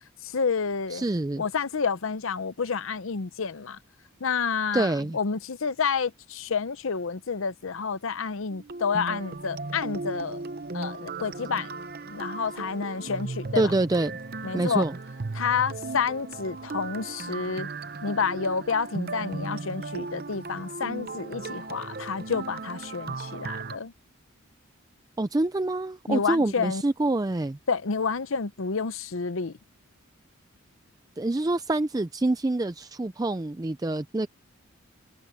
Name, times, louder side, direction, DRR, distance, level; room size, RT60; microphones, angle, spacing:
voice 1, 0.3-1.0 1.4-3.8 4.2-10.4 10.7-11.7 12.1-13.7 14.4-14.8 15.3-17.7 18.0-23.9 26.1-26.8 27.7-29.5, left 5 dB, 70° left, 0.7 m, -29 dB
voice 2, 0.9-1.4 4.7-5.2 13.5-14.1 14.5-15.0 25.2-27.6 31.2-34.3, right 2 dB, 15° right, 0.4 m, -26 dB
sound 1, 8.5-23.8, right 3 dB, 45° right, 0.7 m, -36 dB
head